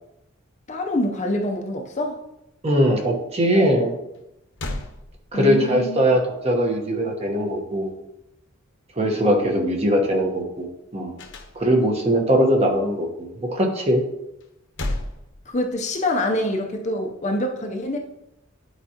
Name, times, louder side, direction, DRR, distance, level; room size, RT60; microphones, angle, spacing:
voice 1, 0.7-2.2 5.3-6.0 15.5-18.0, left 1 dB, 35° left, 2 dB, 0.6 m, -25 dB
voice 2, 2.6-4.0 5.3-7.9 9.0-10.7 10.9-11.1 11.5-14.0, equal, 30° right, 2 dB, 1.1 m, -21 dB
sound 1, 4.1-4.2 4.6-5.7 11.2-12.1 14.4-16.0, left 1 dB, 60° left, 0.9 m, -33 dB
10.0 x 4.8 x 2.9 m, 0.86 s
head